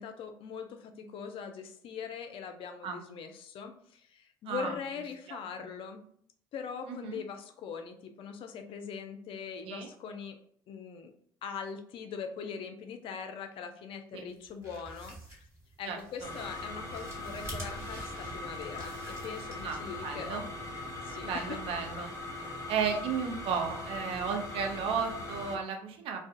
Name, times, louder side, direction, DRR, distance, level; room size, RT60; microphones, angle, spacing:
voice 1, 0.0-6.0 6.5-10.4 10.7-11.1 11.4-15.4 15.8-20.5 21.0-21.6, left 6 dB, 60° left, 7 dB, 0.4 m, -41 dB
voice 2, 4.5-4.8 5.3-5.7 6.9-7.2 9.6-9.9 14.1-14.3 15.9-16.3 19.6-20.4 21.2-22.1 22.7-26.2, right 6 dB, 65° right, 4 dB, 0.5 m, -34 dB
sound 1, 14.4-19.9, right 1 dB, 25° right, 1.4 m, -47 dB
sound 2, 16.2-25.6, left 2 dB, 30° left, 0.8 m, -40 dB
2.3 x 2.2 x 2.5 m, 0.64 s
hypercardioid pair, 60°, 10 cm